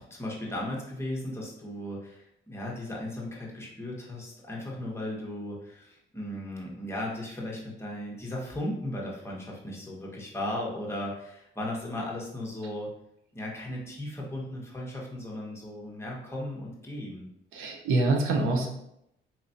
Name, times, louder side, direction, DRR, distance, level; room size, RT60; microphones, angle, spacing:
voice 1, 0.0-12.9 13.3-17.3, left 1 dB, 15° left, -3 dB, 1.3 m, -36 dB
voice 2, 17.5-18.7, right 2 dB, 90° right, 2 dB, 0.8 m, -25 dB
4.5 x 3.0 x 2.7 m, 0.78 s
cardioid pair, 90°, 20 cm